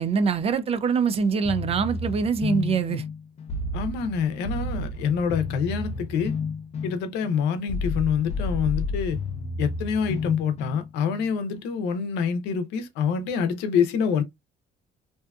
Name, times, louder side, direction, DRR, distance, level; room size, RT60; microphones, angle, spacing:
voice 1, 0.0-3.0, right 5 dB, 35° right, 0.4 m, -24 dB
sound 1, 1.4-11.2, left 3 dB, 40° left, 0.6 m, -31 dB
voice 2, 3.7-6.3 6.8-9.2 9.6-14.2, left 6 dB, 90° left, 0.6 m, -26 dB
2.6 x 2.3 x 2.3 m
cardioid pair, 110°, 17 cm